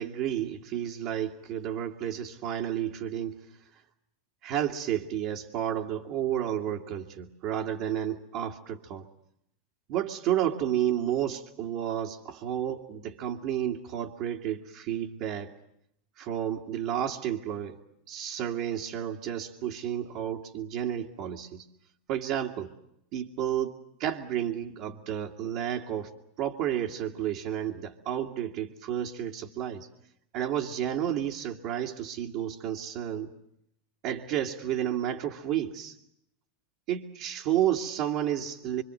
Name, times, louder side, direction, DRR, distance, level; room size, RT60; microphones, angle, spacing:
voice 1, 0.0-3.4 4.4-9.1 9.9-15.6 16.2-17.8 18.1-21.7 22.1-22.7 23.1-23.7 24.0-26.1 26.4-29.9 30.3-33.3 34.0-35.9 36.9-38.8, right 10 dB, 55° right, -3 dB, 2.1 m, -31 dB
26.0 x 25.0 x 7.9 m, 0.76 s
hypercardioid pair, 100°, 0 cm